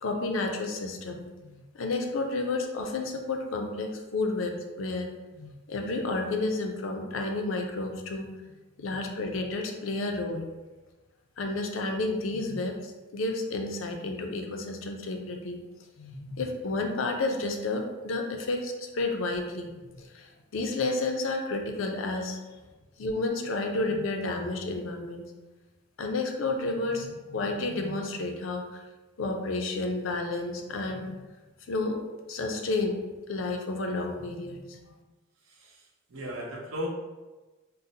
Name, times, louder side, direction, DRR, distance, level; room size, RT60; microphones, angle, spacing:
voice 1, 0.0-8.3 8.8-10.4 11.4-15.6 16.0-22.4 23.0-25.2 26.0-28.8 29.2-31.2 31.7-32.0 32.3-33.0 33.3-34.8, left 2 dB, 70° left, 4 dB, 0.4 m, -31 dB
voice 2, 35.4-36.9, equal, 80° right, -2 dB, 0.7 m, -37 dB
3.8 x 2.0 x 2.7 m, 1.2 s
head